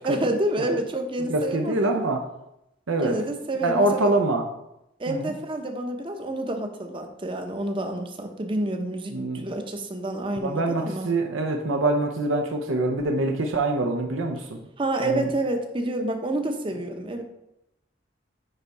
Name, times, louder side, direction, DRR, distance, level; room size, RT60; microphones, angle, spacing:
voice 1, 0.0-2.0 3.0-4.1 5.0-11.1 14.8-17.2, right 1 dB, 25° right, 5 dB, 0.7 m, -28 dB
voice 2, 1.3-2.2 2.9-3.2 3.6-4.4 5.1-5.3 9.1-9.4 10.4-14.6 15.0-15.3, right 2 dB, 80° right, 3 dB, 0.7 m, -24 dB
9.8 x 3.5 x 4.1 m, 0.86 s
head